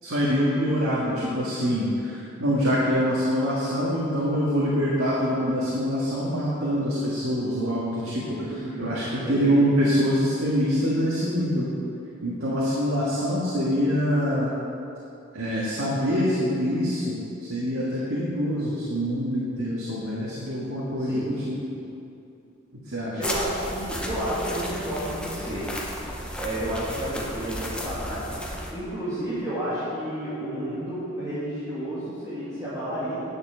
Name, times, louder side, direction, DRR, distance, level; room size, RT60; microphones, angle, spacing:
voice 1, 0.0-11.7 12.2-14.5 15.3-17.1 17.4-21.6 22.9-23.2, equal, 80° right, -7 dB, 1.8 m, -25 dB
voice 2, 8.4-9.6 21.0-21.3 23.1-25.7 26.4-33.3, right 1 dB, 15° right, -12 dB, 2.3 m, -31 dB
sound 1, 23.2-28.7, equal, 5° left, 0.9 m, -34 dB
10.0 x 7.1 x 6.3 m, 2.7 s
head